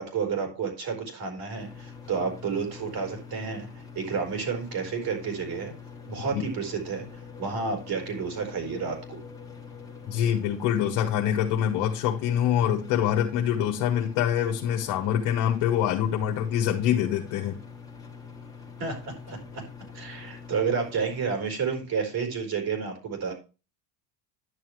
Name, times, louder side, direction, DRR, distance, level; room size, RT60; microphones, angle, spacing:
voice 1, 0.0-5.7 6.1-9.2 18.8-19.6 19.9-23.3, right 5 dB, 45° right, 4.5 m, -31 dB
sound 1, 1.6-21.3, left 5 dB, 5° left, 1.9 m, -44 dB
voice 2, 10.0-17.5, left 10 dB, 65° left, 1.6 m, -25 dB
10.5 x 6.9 x 3.1 m
supercardioid pair, 120°, 49 cm